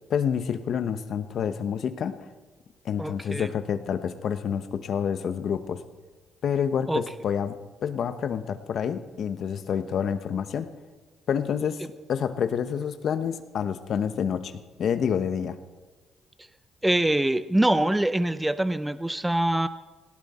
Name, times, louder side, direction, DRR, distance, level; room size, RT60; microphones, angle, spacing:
voice 1, 0.1-2.2 2.8-5.8 6.4-7.5 7.8-10.7 11.3-11.8 12.1-15.6, left 7 dB, 65° left, 11 dB, 1.0 m, -28 dB
voice 2, 3.0-3.5 6.9-7.0 16.8-19.7, right 1 dB, 10° right, 13 dB, 0.6 m, -24 dB
18.5 x 17.0 x 4.3 m, 1.3 s
cardioid pair, 90°, 0 cm